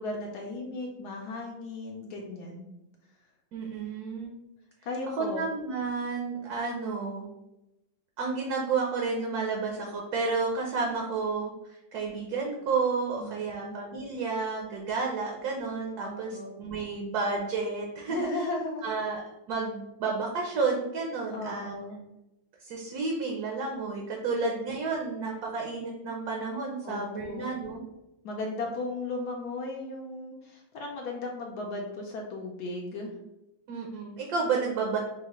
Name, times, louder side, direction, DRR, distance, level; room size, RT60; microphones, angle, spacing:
voice 1, 0.0-2.7 4.8-5.4 13.2-13.8 16.0-16.5 18.1-18.8 21.3-22.0 26.8-27.4 28.2-33.1, left 2 dB, 70° left, 0 dB, 1.0 m, -36 dB
voice 2, 3.5-4.3 5.2-7.3 8.2-18.3 18.8-21.7 22.6-27.8 33.7-35.0, right 4 dB, 65° right, 0 dB, 1.0 m, -31 dB
5.4 x 2.4 x 2.9 m, 0.91 s
omnidirectional pair, 2.1 m